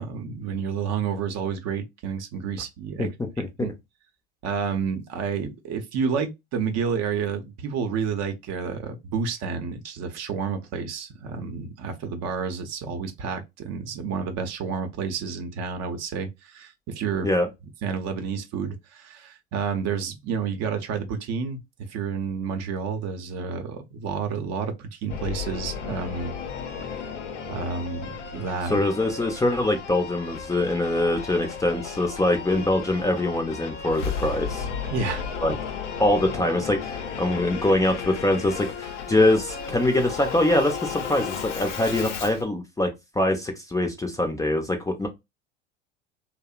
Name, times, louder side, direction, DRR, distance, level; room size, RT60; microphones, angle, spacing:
voice 1, 0.0-3.1 3.6-3.7 4.4-17.3 17.8-26.3 26.9-27.0 27.5-28.8 34.9-35.3, right 6 dB, 50° right, 0.7 m, -30 dB
voice 2, 3.4-3.7 17.2-17.5 28.7-34.7 35.4-35.5 36.0-42.9 43.1-45.1, left 1 dB, 10° left, 0.5 m, -23 dB
Singing / Musical instrument, 25.1-42.4, left 6 dB, 90° left, 0.6 m, -34 dB
2.7 x 2.0 x 2.3 m
hypercardioid pair, 85°, 35 cm